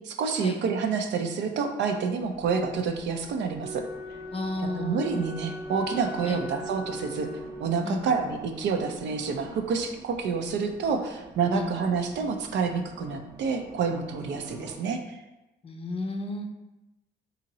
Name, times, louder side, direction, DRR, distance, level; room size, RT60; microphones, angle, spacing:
voice 1, 0.0-3.8 4.8-7.3 7.6-15.2, right 5 dB, 75° right, 5 dB, 0.5 m, -28 dB
Race car auto racing, 2.2-14.8, right 2 dB, 15° right, 0.6 m, -47 dB
Wind instrument woodwind instrument, 3.5-8.0, equal, 90° right, 0.9 m, -39 dB
voice 2, 4.3-5.2 6.3-6.5 7.8-8.1 11.5-11.8 15.6-16.5, left 2 dB, 30° left, 4 dB, 0.5 m, -33 dB
2.8 x 2.7 x 4.0 m, 0.99 s
cardioid pair, 100°, 19 cm